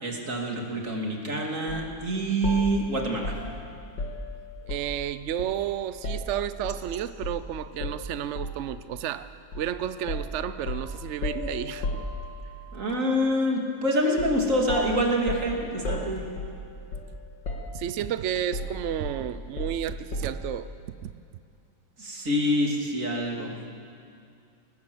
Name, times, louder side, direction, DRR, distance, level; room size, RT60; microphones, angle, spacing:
voice 1, 0.0-3.4 12.7-16.2 22.0-23.7, equal, 45° right, 0 dB, 3.0 m, -26 dB
sound 1, 1.7-1.9 2.4-5.0 5.4-6.9 7.2-7.4 7.8-8.7 9.5-9.7 10.1-12.6 14.2-14.4 14.7-17.2 17.4-18.1 18.5-20.5, left 1 dB, 75° left, 2.9 m, -34 dB
voice 2, 4.6-9.3 9.5-12.0 17.7-20.7 21.0-21.1, right 10 dB, 80° right, 13 dB, 0.6 m, -31 dB
21.0 x 19.0 x 7.9 m, 2.5 s
omnidirectional pair, 2.0 m